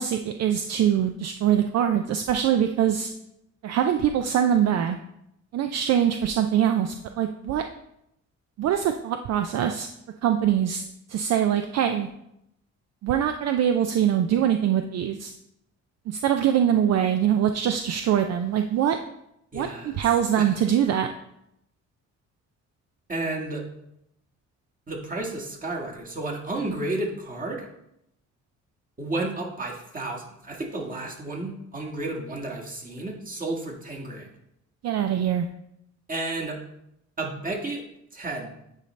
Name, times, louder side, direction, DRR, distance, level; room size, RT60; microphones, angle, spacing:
voice 1, 0.0-3.1 3.6-5.0 5.5-7.6 8.6-9.9 10.2-10.8 11.1-12.1 13.0-15.3 16.1-19.0 19.5-19.7 19.9-21.1 34.8-35.5, right 9 dB, 60° right, 7 dB, 0.5 m, -23 dB
voice 2, 19.5-20.0 20.4-20.5 23.1-23.6 24.9-27.7 29.0-34.3 36.1-36.6 37.2-37.8 38.1-38.5, right 2 dB, 25° right, -1 dB, 1.6 m, -32 dB
9.7 x 4.1 x 3.2 m, 0.79 s
cardioid pair, 90°, 30 cm